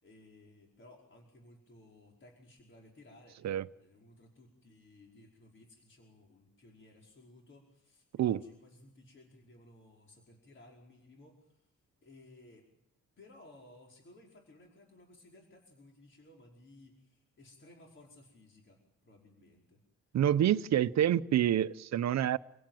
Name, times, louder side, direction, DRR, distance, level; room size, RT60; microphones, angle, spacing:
voice 1, 0.0-11.7 12.0-12.7 13.2-19.8 20.4-21.2, left 1 dB, 40° left, 5.2 m, -58 dB
voice 2, 20.1-22.4, right 11 dB, 65° right, 0.9 m, -27 dB
27.5 x 17.0 x 9.2 m
cardioid pair, 90°, 30 cm